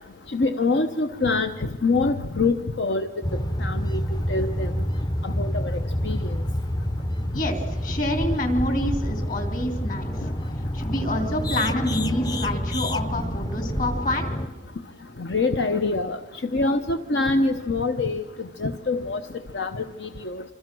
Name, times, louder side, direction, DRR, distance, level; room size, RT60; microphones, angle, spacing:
voice 1, 0.3-4.0 4.3-4.7 5.2-6.4 15.2-16.2 16.4-19.2 19.5-20.4, left 3 dB, 65° left, 8 dB, 0.8 m, -25 dB
sound 1, 3.2-14.5, equal, 20° left, 0.7 m, -28 dB
voice 2, 7.3-10.3 10.7-14.4, left 1 dB, 45° left, 5 dB, 3.4 m, -27 dB
27.0 x 26.0 x 6.2 m, 1.2 s
head